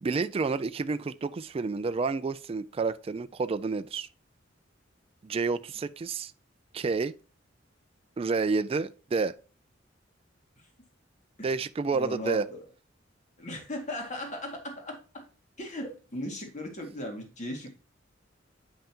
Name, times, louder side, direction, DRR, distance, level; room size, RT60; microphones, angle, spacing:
voice 1, 0.0-4.1 5.2-6.3 6.7-7.1 8.2-9.3 11.4-12.5, right 4 dB, 30° right, 0.3 m, -29 dB
voice 2, 11.9-12.6 13.4-15.2 15.6-17.7, left 1 dB, 40° left, 2.1 m, -37 dB
8.8 x 5.5 x 2.9 m
head